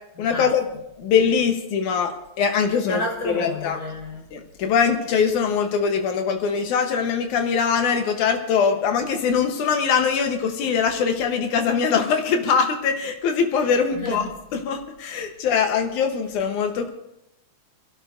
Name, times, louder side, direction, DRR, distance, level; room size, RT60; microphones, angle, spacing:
voice 1, 0.2-0.7 1.0-3.8 4.3-16.9, left 6 dB, 85° left, 2.6 m, -22 dB
voice 2, 2.9-4.3 13.9-14.3, left 1 dB, 40° left, 5.1 m, -30 dB
28.0 x 12.0 x 2.6 m
omnidirectional pair, 3.4 m